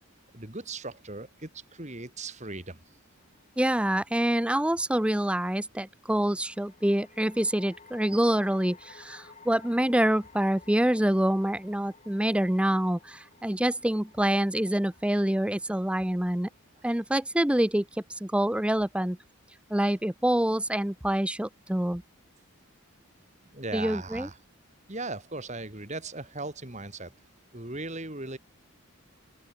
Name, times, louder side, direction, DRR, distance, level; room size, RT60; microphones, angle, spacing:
voice 1, 0.3-3.0 23.5-24.4 24.9-27.1 27.5-28.4, right 2 dB, 30° right, 2.8 m, -38 dB
sound 1, 3.2-3.9 6.3-17.7, left 4 dB, 30° left, 2.8 m, -55 dB
voice 2, 3.6-16.5 16.8-17.8 18.2-19.2 19.7-22.0 23.7-24.3, right 1 dB, 5° right, 0.5 m, -26 dB
open air
head